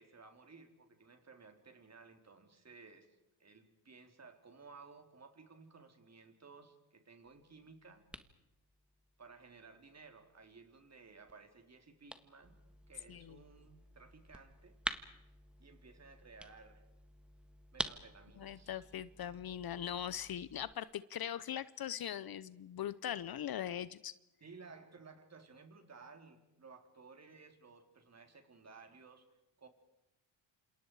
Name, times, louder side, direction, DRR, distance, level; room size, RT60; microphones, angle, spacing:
voice 1, 0.0-8.1 9.2-12.6 12.9-14.8 15.6-16.8 17.7-18.8 24.4-29.3 29.6-29.7, right 4 dB, 30° right, 6 dB, 3.9 m, -57 dB
sound 1, 7.3-20.7, equal, ahead, 1.5 m, -49 dB
voice 2, 18.4-24.1, left 10 dB, 45° left, 17 dB, 0.8 m, -41 dB
28.0 x 27.5 x 4.9 m, 0.92 s
cardioid pair, 90°, 49 cm